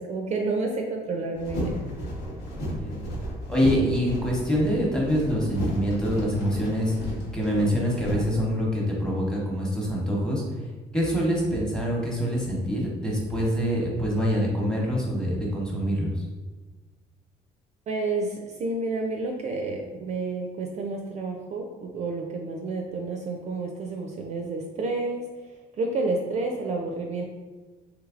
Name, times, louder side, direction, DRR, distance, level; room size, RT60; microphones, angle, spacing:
voice 1, 0.0-1.8 17.9-25.3 25.8-27.2, right 3 dB, 40° right, 1 dB, 0.4 m, -30 dB
sound 1, 1.3-8.2, equal, 75° left, 1.1 m, -33 dB
voice 2, 2.5-3.1 3.5-6.9 7.3-16.3, equal, 5° left, -4 dB, 0.9 m, -25 dB
3.2 x 3.1 x 2.4 m, 1.2 s
cardioid pair, 110°, 17 cm